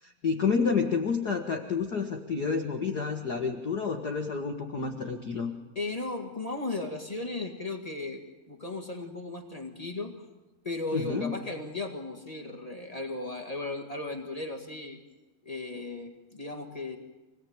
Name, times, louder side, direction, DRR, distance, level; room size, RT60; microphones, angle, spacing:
voice 1, 0.0-5.5 10.9-11.3, left 5 dB, 80° left, 3 dB, 0.8 m, -29 dB
voice 2, 5.7-8.2 8.5-10.2 10.6-15.0 15.4-17.0, left 2 dB, 30° left, 3 dB, 0.7 m, -36 dB
25.5 x 18.5 x 8.8 m, 1.1 s
omnidirectional pair, 4.2 m